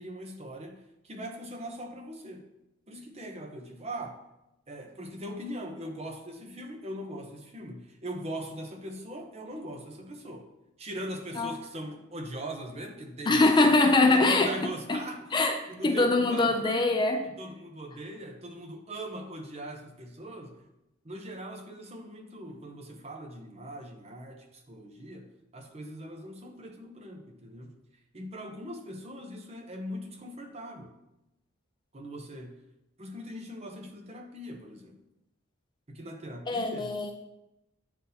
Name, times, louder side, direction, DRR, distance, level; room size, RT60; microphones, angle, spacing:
voice 1, 0.0-2.4 2.9-4.2 4.7-10.5 10.8-13.7 14.1-15.3 15.7-16.9 17.4-20.6 21.0-27.7 28.1-30.9 31.9-32.5 33.0-35.0 35.9-36.9, right 1 dB, 30° right, 3 dB, 0.7 m, -41 dB
voice 2, 13.3-14.5 14.9-15.0 15.3-15.6 15.8-17.3 36.5-37.1, left 2 dB, 20° left, 5 dB, 0.4 m, -23 dB
8.9 x 3.9 x 2.7 m, 0.90 s
head